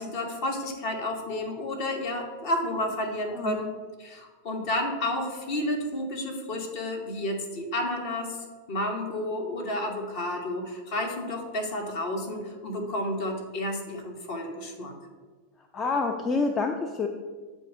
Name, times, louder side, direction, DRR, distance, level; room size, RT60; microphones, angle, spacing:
voice 1, 0.0-3.7 4.0-14.9, left 1 dB, 45° left, 2 dB, 1.1 m, -31 dB
voice 2, 15.7-17.1, left 4 dB, 20° left, 4 dB, 0.4 m, -27 dB
7.5 x 2.7 x 5.0 m, 1.4 s
figure-of-eight pair, 90°, 0 cm